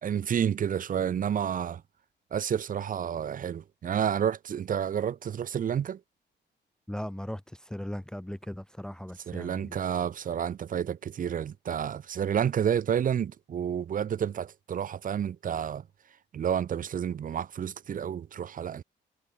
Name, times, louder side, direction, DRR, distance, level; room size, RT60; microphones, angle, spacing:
voice 1, 0.0-1.8 2.3-6.0 9.3-15.8 16.3-18.8, right 8 dB, 45° right, 1.0 m, -30 dB
voice 2, 6.9-9.8, left 1 dB, 5° left, 0.8 m, -38 dB
wide cardioid pair, 175°, 19 cm